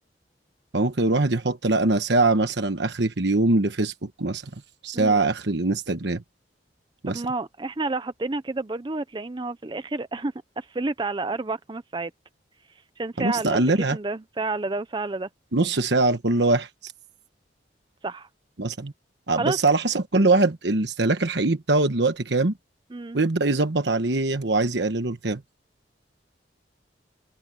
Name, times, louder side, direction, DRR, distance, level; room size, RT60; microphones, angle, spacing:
voice 1, 0.7-4.4 4.8-6.2 7.0-7.2 13.2-14.0 15.5-16.9 18.6-18.9 19.3-22.5 23.1-25.4, right 2 dB, 70° right, 1.2 m, -22 dB
voice 2, 7.1-12.1 13.0-15.3 18.0-18.3 19.4-19.6 22.9-23.2, right 3 dB, 25° right, 0.5 m, -30 dB
head